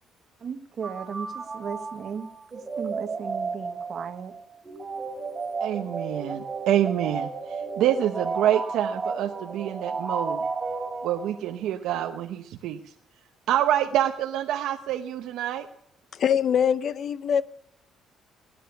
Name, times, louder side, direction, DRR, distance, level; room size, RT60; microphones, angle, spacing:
voice 1, 0.4-4.3, right 6 dB, 50° right, 7 dB, 1.5 m, -36 dB
sound 1, 0.8-11.6, right 4 dB, 25° right, 3.3 m, -33 dB
voice 2, 5.6-7.3 7.8-10.4 11.0-12.8 13.5-15.7, right 11 dB, 85° right, 5 dB, 0.9 m, -26 dB
voice 3, 16.1-17.4, left 8 dB, 55° left, 17 dB, 0.7 m, -23 dB
17.0 x 10.0 x 6.9 m, 0.73 s
cardioid pair, 110°, 0 cm